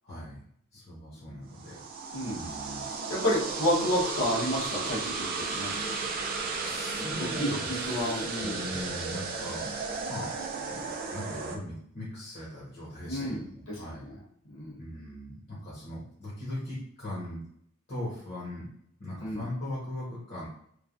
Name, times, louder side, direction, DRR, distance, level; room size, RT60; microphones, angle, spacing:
voice 1, 0.0-0.4 0.7-1.8 2.3-2.8 6.6-9.8 10.1-10.3 10.7-14.1 14.8-17.4 17.9-18.7 19.0-20.5, left 1 dB, 50° left, -8 dB, 1.1 m, -39 dB
sound 1, 1.5-11.6, right 4 dB, 45° right, 0.4 m, -34 dB
voice 2, 3.1-5.9 7.2-7.3 7.9-8.5 13.1-13.8 14.1-14.2 14.5-14.7 19.2-19.4, left 1 dB, 75° left, -6 dB, 1.2 m, -30 dB
3.0 x 2.4 x 2.5 m, 0.67 s
head